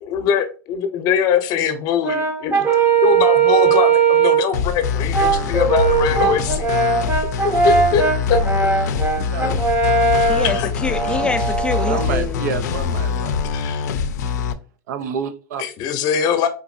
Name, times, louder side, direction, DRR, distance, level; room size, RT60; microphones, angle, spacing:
voice 1, 0.0-2.7 3.0-6.7 7.6-8.0 8.3-8.4 10.4-10.7 13.5-13.9 15.6-16.5, left 8 dB, 45° left, 0.7 m, -22 dB
Brass instrument, 2.0-4.5 5.1-12.1, right 5 dB, 25° right, 0.7 m, -19 dB
sound 1, 4.5-14.5, left 6 dB, 80° left, 0.4 m, -24 dB
voice 2, 9.1-9.6 11.9-13.4 14.9-15.6, right 6 dB, 80° right, 0.5 m, -28 dB
voice 3, 10.1-12.8, left 3 dB, 10° left, 0.4 m, -26 dB
3.9 x 2.6 x 2.5 m
supercardioid pair, 125°, 9 cm